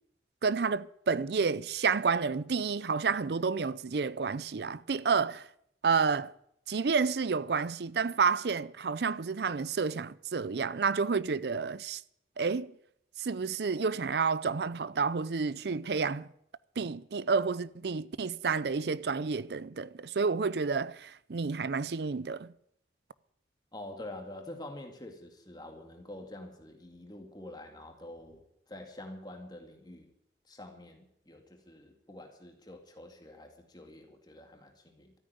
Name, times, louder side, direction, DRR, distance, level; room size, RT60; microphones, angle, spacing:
voice 1, 0.4-5.5 5.8-6.3 6.7-12.0 12.4-12.7 13.2-16.3 16.8-22.5, right 5 dB, 65° right, 0.5 m, -30 dB
voice 2, 23.7-30.1 30.4-35.1, left 1 dB, 25° left, 2.2 m, -47 dB
13.5 x 9.3 x 9.3 m
head